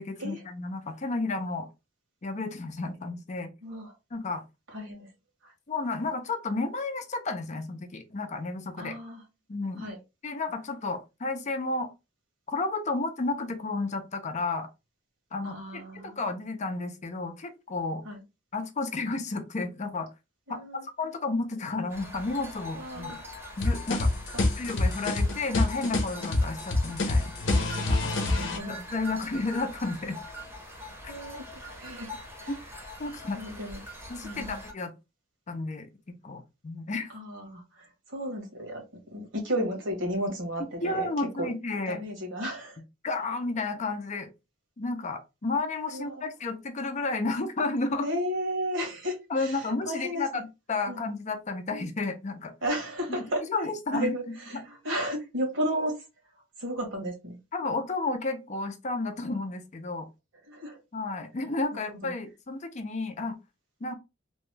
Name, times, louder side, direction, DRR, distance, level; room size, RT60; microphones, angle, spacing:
voice 1, 0.0-1.7 2.2-3.5 4.1-4.4 5.7-9.0 9.5-9.9 10.2-11.9 12.5-14.7 15.3-18.0 18.5-20.1 20.5-20.6 21.0-23.2 23.6-24.1 24.6-27.3 27.9-28.2 28.7-30.2 31.0-31.1 32.5-33.4 34.1-34.9 35.5-35.9 36.2-37.1 39.6-39.7 40.8-42.0 43.0-44.3 44.8-48.1 49.3-52.5 53.1-53.2 53.5-54.6 57.5-60.1 60.9-63.4 63.8-64.0, left 3 dB, 35° left, 0.5 m, -32 dB
voice 2, 3.6-3.9 4.7-5.1 5.4-5.5 8.8-9.2 9.8-10.0 15.4-16.2 18.0-18.2 20.5-20.8 22.7-23.2 28.0-28.8 31.1-32.6 33.3-33.8 34.2-34.6 37.1-38.8 39.1-41.1 41.4-41.5 41.9-42.8 45.9-46.2 48.0-50.3 50.9-51.1 52.6-53.4 53.9-56.1 56.6-57.4 60.4-60.8 61.7-62.1, equal, 75° right, 1.3 m, -34 dB
sound 1, 21.9-34.7, left 1 dB, 10° right, 0.8 m, -43 dB
sound 2, 23.6-28.6, left 2 dB, 70° left, 0.7 m, -26 dB
2.9 x 2.2 x 3.2 m
head